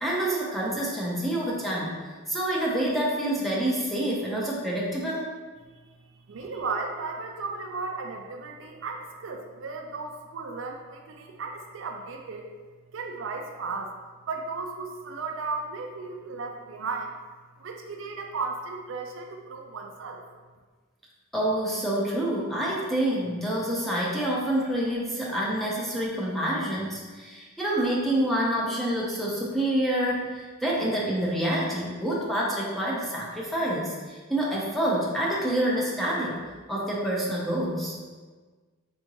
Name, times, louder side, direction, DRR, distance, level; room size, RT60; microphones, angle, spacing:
voice 1, 0.0-2.0 2.3-5.3 21.3-36.3 36.7-37.9, right 1 dB, ahead, -5 dB, 0.7 m, -27 dB
voice 2, 6.3-12.5 12.9-13.9 14.3-17.1 17.6-20.2, right 4 dB, 65° right, 3 dB, 0.4 m, -35 dB
4.3 x 3.6 x 3.0 m, 1.4 s
head